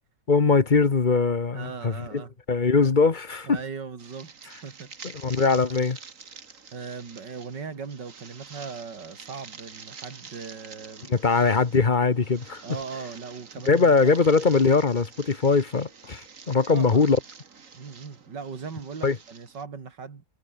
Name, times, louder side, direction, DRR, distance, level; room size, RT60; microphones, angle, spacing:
voice 1, 0.3-1.9 2.5-3.6 5.2-6.0 11.1-12.6 13.7-17.2 19.0-19.2, left 4 dB, 30° left, 1.2 m, -21 dB
voice 2, 1.5-2.3 2.7-2.9 3.5-4.9 6.7-11.1 12.6-14.1 16.7-17.0 17.7-20.3, right 5 dB, 90° right, 3.2 m, -39 dB
sound 1, 4.0-19.6, right 5 dB, 50° right, 2.2 m, -47 dB
omnidirectional pair, 1.8 m